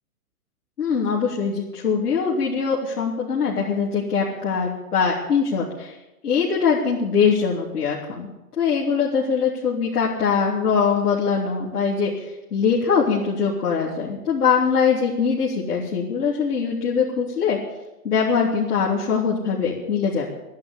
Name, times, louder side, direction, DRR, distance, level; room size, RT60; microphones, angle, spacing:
voice 1, 0.8-6.0 6.2-8.3 8.6-12.1 12.5-17.6 18.0-20.3, left 6 dB, 85° left, -5 dB, 3.7 m, -22 dB
11.5 x 11.0 x 9.8 m, 0.98 s
hypercardioid pair, 145°, 45 cm